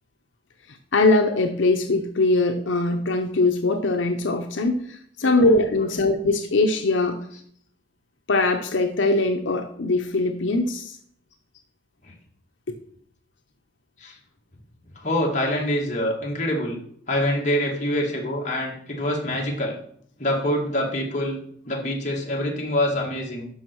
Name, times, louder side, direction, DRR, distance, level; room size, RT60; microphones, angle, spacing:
voice 1, 0.7-7.2 8.3-11.0 12.7-12.8, left 2 dB, 75° left, 5 dB, 0.8 m, -21 dB
voice 2, 5.2-6.0 7.3-7.4 12.0-12.1 14.0-14.2 15.0-16.8 17.1-19.7 20.2-21.4 21.6-23.5, left 1 dB, 40° left, -1 dB, 2.2 m, -26 dB
12.0 x 5.4 x 4.7 m, 0.64 s
head